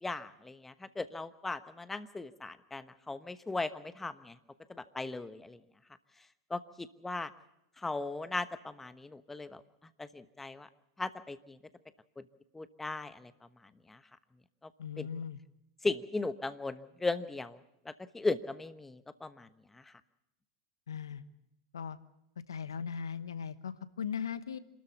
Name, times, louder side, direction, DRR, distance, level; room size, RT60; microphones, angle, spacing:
voice 1, 0.0-4.4 4.7-5.6 6.5-7.3 7.8-9.6 10.0-10.7 11.0-11.6 12.2-12.3 12.5-13.3 13.9-14.0 15.0-15.1 15.8-19.9, left 3 dB, 10° left, 12 dB, 1.1 m, -37 dB
voice 2, 14.8-15.4 20.9-21.2 21.7-22.0 22.5-24.6, left 7 dB, 85° left, 14 dB, 1.1 m, -38 dB
27.0 x 13.5 x 8.1 m, 0.84 s
hypercardioid pair, 100°, 2 cm